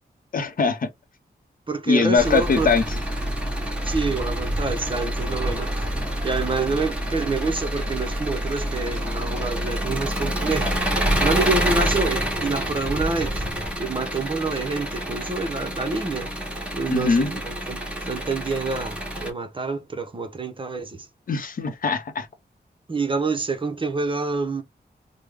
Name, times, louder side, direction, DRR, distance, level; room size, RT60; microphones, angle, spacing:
voice 1, 0.3-0.9 1.9-2.8 16.9-17.3 21.3-22.3, left 4 dB, 55° left, 0.7 m, -21 dB
voice 2, 1.7-2.7 3.8-6.0 6.2-10.8 11.2-13.5 13.8-16.3 16.7-21.1 22.9-24.6, right 3 dB, 30° right, 0.6 m, -27 dB
Engine, 2.2-19.3, right 1 dB, 5° right, 1.1 m, -27 dB
3.4 x 2.0 x 3.3 m
wide cardioid pair, 125°, 17 cm